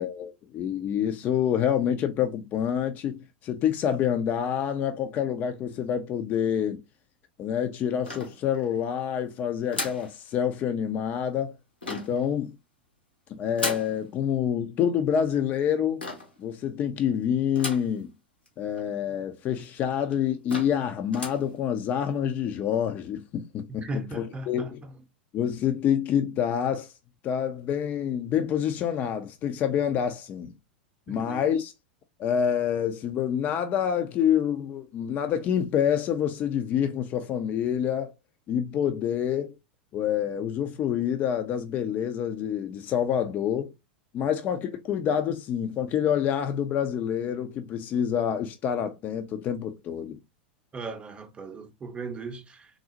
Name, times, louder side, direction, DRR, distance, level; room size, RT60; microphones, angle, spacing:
voice 1, 0.0-6.8 7.4-11.6 11.9-12.5 13.3-16.1 16.4-18.1 18.6-24.8 25.3-26.9 27.2-30.5 31.1-31.7 32.2-38.1 38.5-39.5 39.9-43.7 44.1-50.2, left 9 dB, 35° left, 0.4 m, -27 dB
sound 1, 8.1-8.8 9.7-10.1 11.8-12.3 13.6-14.0 16.0-16.4 17.6-18.0 18.5-18.6 18.8-18.9 19.6-19.7 20.1-20.2 20.5-20.8 21.1-21.5, left 2 dB, 85° left, 1.1 m, -34 dB
voice 2, 23.8-24.9 31.1-31.4 50.7-52.7, right 2 dB, 20° right, 0.7 m, -37 dB
3.8 x 2.0 x 2.8 m
figure-of-eight pair, 90°, 5 cm